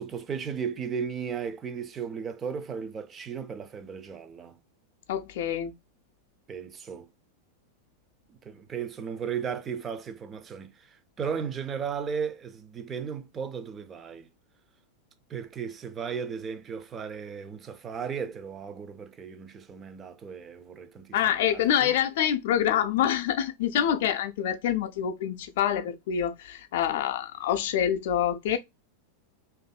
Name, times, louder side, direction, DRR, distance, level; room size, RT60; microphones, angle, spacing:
voice 1, 0.0-4.6 6.5-7.1 8.3-14.3 15.3-22.0, right 6 dB, 25° right, 0.4 m, -35 dB
voice 2, 5.1-5.7 21.1-28.6, left 10 dB, 55° left, 0.3 m, -26 dB
2.6 x 2.4 x 2.2 m
figure-of-eight pair, 90°, 0 cm